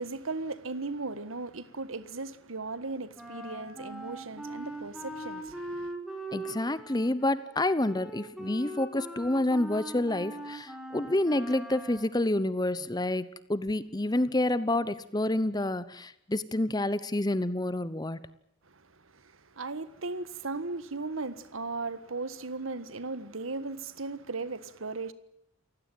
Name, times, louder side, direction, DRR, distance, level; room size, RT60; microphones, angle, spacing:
voice 1, 0.0-5.9 18.9-25.1, right 3 dB, 85° right, 1.6 m, -37 dB
Wind instrument woodwind instrument, 3.1-12.2, right 1 dB, ahead, 4.8 m, -41 dB
voice 2, 6.3-18.2, left 1 dB, 20° left, 0.9 m, -28 dB
29.5 x 16.5 x 9.2 m
head